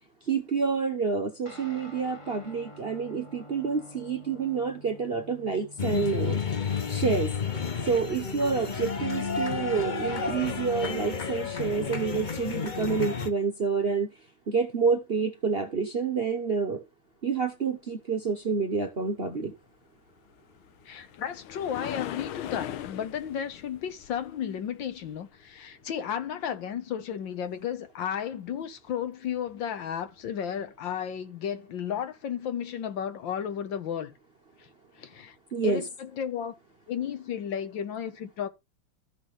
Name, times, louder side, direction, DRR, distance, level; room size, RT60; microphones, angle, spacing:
voice 1, 0.3-6.4 6.9-7.3 7.9-14.1 14.5-16.8 17.2-19.5 35.5-35.8, right 5 dB, 40° right, 0.9 m, -28 dB
Guitar, 1.4-9.1, left 1 dB, 15° left, 1.5 m, -50 dB
sound 1, 5.8-13.3, left 5 dB, 50° left, 0.5 m, -31 dB
sound 2, 20.3-25.6 29.5-29.6 30.2-30.3, left 11 dB, 85° left, 1.6 m, -39 dB
voice 2, 20.9-34.1 35.0-35.4 35.6-36.5 36.9-38.5, left 8 dB, 70° left, 1.6 m, -33 dB
14.0 x 6.0 x 3.2 m
omnidirectional pair, 2.3 m